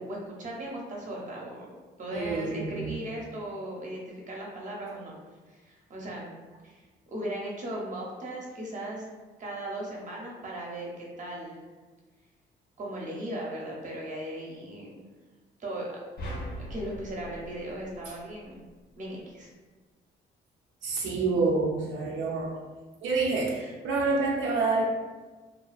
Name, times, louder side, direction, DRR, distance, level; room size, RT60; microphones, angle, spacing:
voice 1, 0.0-5.2 5.5-6.3 6.6-6.8 7.1-9.1 9.4-11.6 12.8-14.9 15.6-16.0 16.6-18.6 19.0-19.5, right 1 dB, 40° right, -2 dB, 0.7 m, -37 dB
voice 2, 2.1-3.0 18.1-18.2 20.8-22.5 23.0-24.8, right 3 dB, 80° right, -3 dB, 0.5 m, -28 dB
sound 1, 16.2-18.6, equal, 60° left, 0.7 m, -40 dB
2.3 x 2.3 x 2.3 m, 1.3 s
cardioid pair, 90°, 20 cm